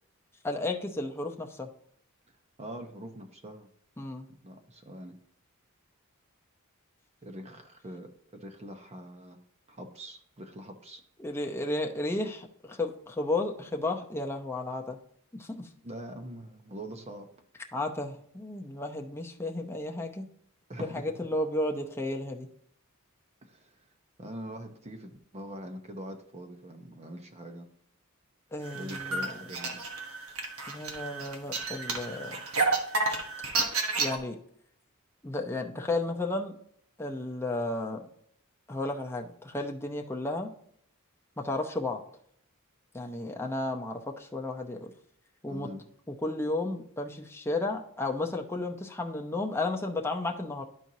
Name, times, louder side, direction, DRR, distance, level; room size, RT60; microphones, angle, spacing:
voice 1, 0.4-1.7 4.0-4.3 11.2-15.0 15.4-15.6 17.7-20.2 20.8-22.5 28.5-29.3 30.7-32.4 34.0-34.4 35.2-36.5 37.0-38.1 38.7-40.5 41.4-42.0 42.9-44.9 45.4-45.7 46.2-50.6, left 2 dB, 10° left, 1 dB, 0.7 m, -33 dB
voice 2, 2.6-3.7 4.4-5.2 7.2-9.4 9.7-11.0 15.8-17.3 20.7-21.3 23.4-23.7 24.2-27.7 28.7-29.8 45.5-45.9, equal, 30° right, 5 dB, 0.8 m, -43 dB
sound 1, 28.7-34.2, right 3 dB, 75° right, 1.2 m, -31 dB
12.0 x 4.5 x 2.7 m, 0.68 s
head